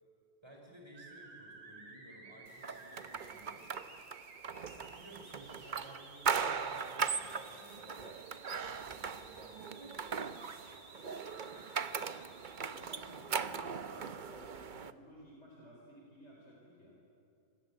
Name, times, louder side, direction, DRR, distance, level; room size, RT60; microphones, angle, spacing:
voice 1, 0.4-3.7 4.6-10.4 10.9-12.2, right 1 dB, 15° right, 0 dB, 5.5 m, -57 dB
sound 1, 0.9-13.3, right 3 dB, 75° right, 3.6 m, -56 dB
sound 2, 2.6-14.9, right 6 dB, 60° right, 0.5 m, -39 dB
voice 2, 12.6-17.0, equal, 35° left, -2 dB, 4.3 m, -55 dB
26.5 x 20.5 x 8.9 m, 2.8 s
omnidirectional pair, 2.0 m